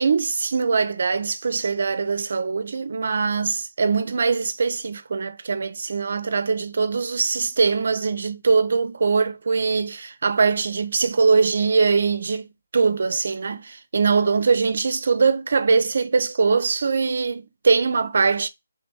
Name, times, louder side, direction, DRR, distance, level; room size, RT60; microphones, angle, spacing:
voice 1, 0.0-12.5 12.7-18.5, right 4 dB, 65° right, 0.5 m, -22 dB
3.4 x 2.9 x 3.4 m
figure-of-eight pair, 155°, 0 cm